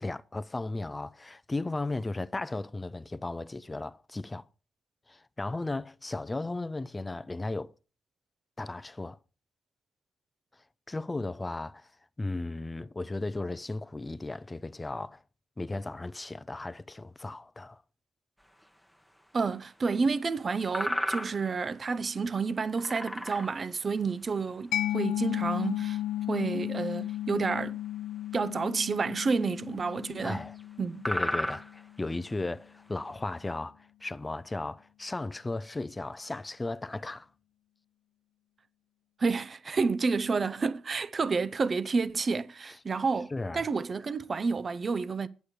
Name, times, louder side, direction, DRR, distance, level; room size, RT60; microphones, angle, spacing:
voice 1, 0.0-4.5 5.1-7.7 8.6-9.2 10.9-11.9 12.2-15.2 15.6-17.8 30.2-30.6 31.0-37.3 43.3-43.7, left 2 dB, 20° left, 0.5 m, -35 dB
sound 1, 18.6-18.7 20.3-20.4 20.7-21.5 21.9-22.0 22.8-23.7 24.8-24.9 25.3-25.7 26.9-27.0 28.6-28.8 29.1-29.2 29.9-30.1 30.6-30.7 31.0-31.8 32.9-33.1, equal, ahead, 1.0 m, -33 dB
voice 2, 19.3-26.0 26.3-27.8 28.3-30.4 30.8-31.1 39.2-45.3, right 4 dB, 35° right, 0.6 m, -30 dB
Mallet percussion, 24.7-32.1, left 13 dB, 90° left, 0.4 m, -34 dB
8.7 x 8.2 x 4.9 m
cardioid pair, 90°, 0 cm